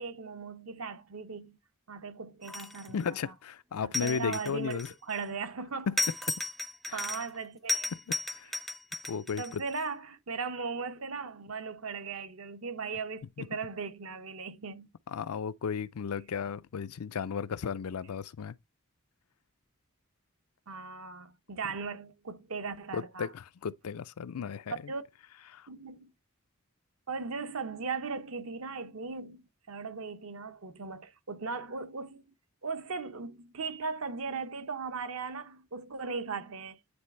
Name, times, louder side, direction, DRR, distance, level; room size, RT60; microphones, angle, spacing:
voice 1, 0.0-1.6 1.9-3.3 3.8-4.8 5.1-5.9 6.9-7.9 9.4-14.9 20.7-23.3 24.9-25.0 25.7-26.1 27.1-32.3 32.6-36.8, right 4 dB, 70° right, 0.8 m, -38 dB
sound 1, 2.4-3.0 3.9-5.2 6.0-7.4 7.7-9.8, left 2 dB, ahead, 0.4 m, -34 dB
voice 2, 2.9-4.9 5.9-6.0 6.3-6.4 6.9-7.1 7.9-8.6 9.1-9.6 13.4-13.5 15.1-18.5 22.9-24.9 25.5-25.7, left 6 dB, 80° left, 0.4 m, -35 dB
9.6 x 3.3 x 4.2 m
head